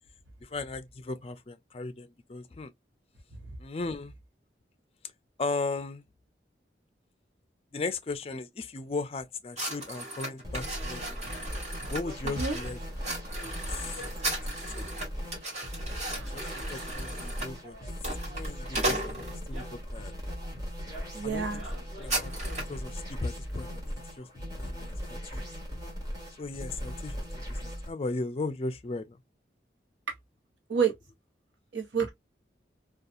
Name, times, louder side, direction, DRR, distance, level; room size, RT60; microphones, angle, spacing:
voice 1, 0.4-2.7 3.6-4.1 5.4-6.0 7.7-11.2 11.9-12.8 13.7-14.0 14.5-14.9 16.1-17.8 18.3-20.1 21.2-21.6 22.0-25.4 26.4-29.2, left 3 dB, 35° left, 0.4 m, -37 dB
sound 1, 9.5-19.7 20.3-20.5 20.9-21.0 21.3-22.8, right 1 dB, 40° right, 1.4 m, -36 dB
sound 2, 10.4-27.9, equal, 20° right, 1.4 m, -38 dB
voice 2, 21.1-21.6 30.7-30.9 31.7-32.1, right 6 dB, 85° right, 0.9 m, -28 dB
2.7 x 2.3 x 2.4 m
head